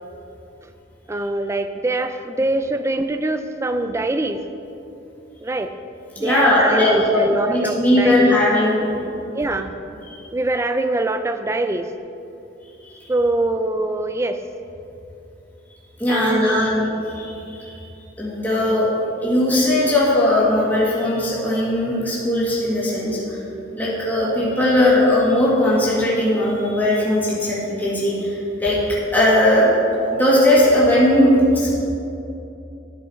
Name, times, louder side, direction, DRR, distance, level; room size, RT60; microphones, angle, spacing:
voice 1, 1.1-4.4 5.4-5.7 6.2-8.3 9.3-9.7 10.3-11.9 13.1-14.4 16.1-16.8, right 2 dB, 15° right, 9 dB, 0.3 m, -23 dB
voice 2, 6.2-8.9 10.1-10.2 12.8-12.9 16.0-17.8 18.2-18.9 19.2-23.4 23.8-28.8 29.1-29.7 30.1-31.7, left 1 dB, 10° left, -8 dB, 1.8 m, -18 dB
11.5 x 5.5 x 4.2 m, 2.8 s
head